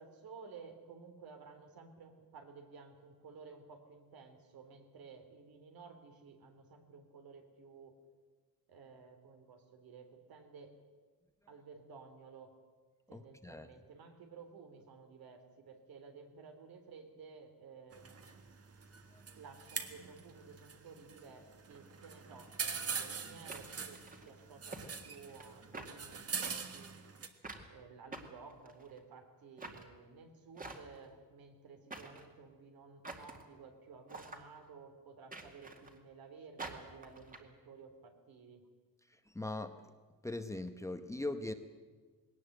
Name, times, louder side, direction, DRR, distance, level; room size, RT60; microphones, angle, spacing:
voice 1, 0.0-8.0 8.7-10.7 11.5-12.5 13.1-18.3 19.3-26.9 27.7-38.6, right 5 dB, 75° right, 6 dB, 3.2 m, -54 dB
voice 2, 13.1-13.7 39.3-39.8 40.2-41.5, left 2 dB, 10° left, 7 dB, 0.9 m, -40 dB
sound 1, 17.9-27.3, right 6 dB, 40° right, 1.7 m, -44 dB
sound 2, 22.5-22.7 23.5-24.3 24.7-24.9 25.1-25.5 25.7-25.9 26.4-26.5 27.4-27.7 28.1-29.0 29.6-29.8 30.6-31.1 31.9-32.3 33.0-33.4 34.1-34.4 35.3-36.0 36.6-37.4, right 3 dB, 25° right, 2.2 m, -47 dB
20.5 x 18.5 x 7.8 m, 1.4 s
cardioid pair, 150°, 36 cm